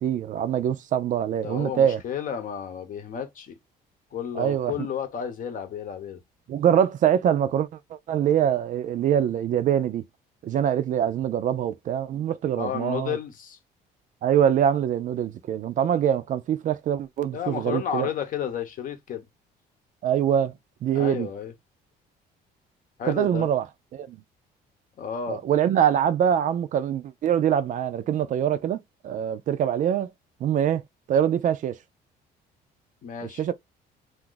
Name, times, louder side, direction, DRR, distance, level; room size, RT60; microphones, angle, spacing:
voice 1, 0.0-2.0 4.4-4.7 6.5-10.0 10.4-13.2 14.2-18.1 20.0-20.5 20.8-21.3 23.1-23.6 23.9-24.2 25.3-30.1 30.4-30.8 31.1-31.8 33.4-33.5, right 9 dB, 50° right, 0.4 m, -24 dB
voice 2, 1.4-3.6 4.1-6.2 12.6-13.6 17.3-19.2 20.9-21.5 23.0-23.5 25.0-25.4 33.0-33.4, left 8 dB, 50° left, 0.8 m, -32 dB
2.5 x 2.4 x 3.7 m
cardioid pair, 110°, 17 cm